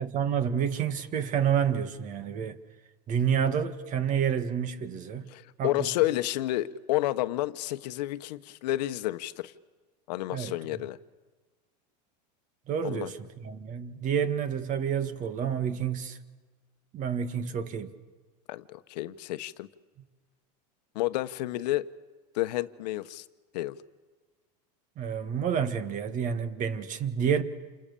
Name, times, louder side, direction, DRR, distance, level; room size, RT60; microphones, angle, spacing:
voice 1, 0.0-2.6 3.1-5.3 5.6-5.9 10.3-10.5 12.7-16.2 16.9-17.9 25.0-27.4, right 8 dB, 35° right, 2.0 m, -29 dB
voice 2, 5.3-9.5 10.1-11.0 12.8-13.1 18.5-19.7 20.9-21.9 22.3-23.2 23.5-23.8, left 16 dB, 75° left, 1.2 m, -30 dB
28.5 x 28.0 x 7.1 m
supercardioid pair, 140°, 21 cm